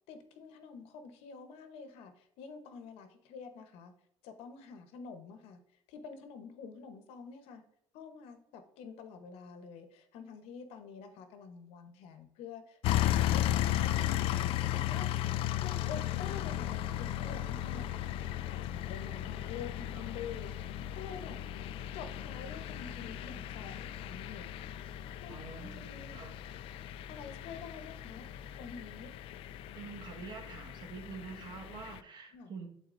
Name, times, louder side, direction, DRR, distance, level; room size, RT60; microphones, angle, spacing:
voice 1, 0.1-3.9 4.2-5.6 5.9-7.6 7.9-15.1 15.6-18.3 18.7-21.4 21.9-26.2 27.1-28.3 28.6-29.1 32.3-32.5, left 6 dB, 85° left, 8 dB, 1.0 m, -48 dB
sound 1, 12.8-32.0, left 13 dB, 70° left, 0.4 m, -35 dB
voice 2, 25.3-26.3 29.7-32.7, right 5 dB, 50° right, 3 dB, 1.5 m, -46 dB
11.5 x 4.1 x 2.6 m, 0.74 s
cardioid pair, 115°, 10 cm